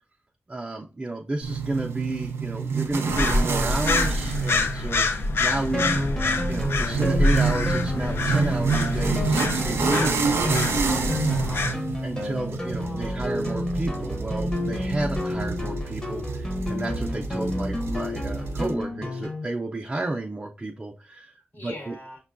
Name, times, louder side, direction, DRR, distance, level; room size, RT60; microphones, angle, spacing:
voice 1, 0.5-6.0 6.2-10.1 12.0-21.9, right 2 dB, 25° right, 1 dB, 0.4 m, -32 dB
sound 1, 1.4-18.7, right 5 dB, 90° right, 0.4 m, -29 dB
sound 2, 3.1-11.7, left 2 dB, 70° left, 0.4 m, -26 dB
sound 3, 5.7-19.5, left 1 dB, 20° left, 0.7 m, -30 dB
voice 2, 9.9-10.4 10.8-11.7 12.8-13.3 21.5-22.2, left 2 dB, 55° left, -1 dB, 1.1 m, -40 dB
5.5 x 2.2 x 2.4 m, 0.34 s
wide cardioid pair, 85°, 4 cm